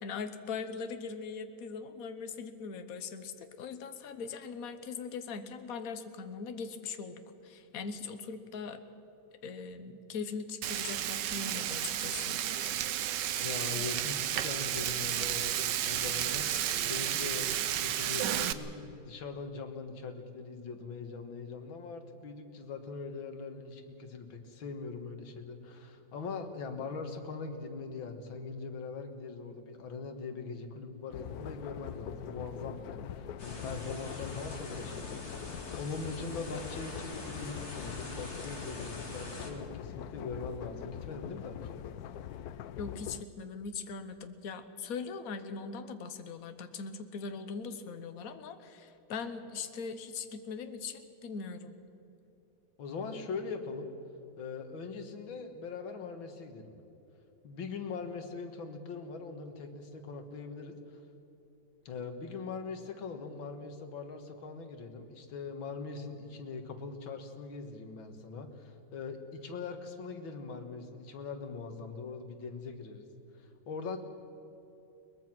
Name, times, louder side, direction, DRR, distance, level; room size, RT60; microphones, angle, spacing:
voice 1, 0.0-8.8 9.4-12.8 42.8-51.8, left 5 dB, 55° left, 9 dB, 1.4 m, -41 dB
Frying (food), 10.6-18.5, right 11 dB, 70° right, 1.3 m, -32 dB
voice 2, 13.4-41.8 52.8-53.9 54.4-56.7 57.4-61.0 61.9-73.0 73.4-74.0, left 4 dB, 90° left, 6 dB, 2.4 m, -41 dB
sound 1, 31.1-43.2, left 10 dB, 70° left, 0.9 m, -43 dB
sound 2, 33.4-39.5, left 2 dB, 35° left, 2.6 m, -44 dB
22.5 x 20.5 x 6.1 m, 2.9 s
omnidirectional pair, 2.1 m